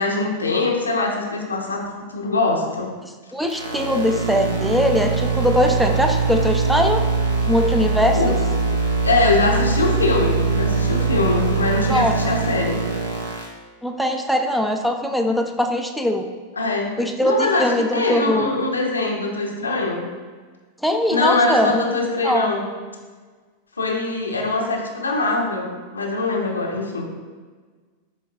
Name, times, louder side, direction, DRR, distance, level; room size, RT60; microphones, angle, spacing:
voice 1, 0.0-2.9 8.1-8.4 9.0-12.8 16.6-17.0 17.2-20.1 21.1-22.6 23.8-27.2, left 3 dB, 75° left, 1 dB, 0.6 m, -22 dB
voice 2, 3.3-7.0 7.5-8.3 11.9-12.1 13.8-16.3 17.0-18.5 20.8-21.8 22.2-22.5, left 1 dB, ahead, 4 dB, 0.3 m, -21 dB
sound 1, 3.5-13.4, right 4 dB, 65° right, 0.8 m, -22 dB
7.3 x 2.9 x 2.2 m, 1.4 s
figure-of-eight pair, 90°, 0 cm